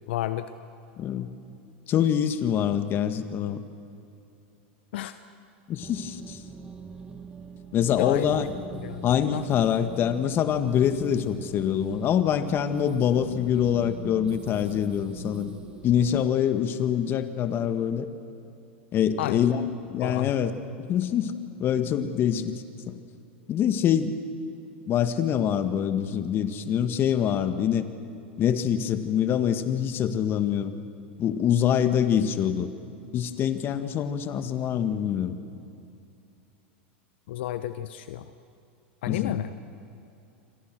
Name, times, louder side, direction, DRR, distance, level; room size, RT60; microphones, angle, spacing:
voice 1, 0.1-0.5 4.9-5.2 7.9-8.2 8.8-9.0 9.3-9.4 19.2-19.4 20.0-20.3 21.8-22.0 37.3-38.2 39.0-39.5, left 13 dB, 70° left, 11 dB, 1.0 m, -30 dB
voice 2, 1.0-1.3 1.9-3.6 5.7-6.4 7.7-8.5 9.0-15.5 15.8-18.1 18.9-20.5 20.8-21.3 21.6-22.9 23.5-24.2 24.9-27.9 28.4-30.7 31.2-32.7 33.1-35.4 39.1-39.3, left 9 dB, 35° left, 10 dB, 1.9 m, -25 dB
sound 1, 5.8-16.2, right 4 dB, 15° right, 2.1 m, -43 dB
28.5 x 25.0 x 6.3 m, 2.7 s
hypercardioid pair, 110°, 6 cm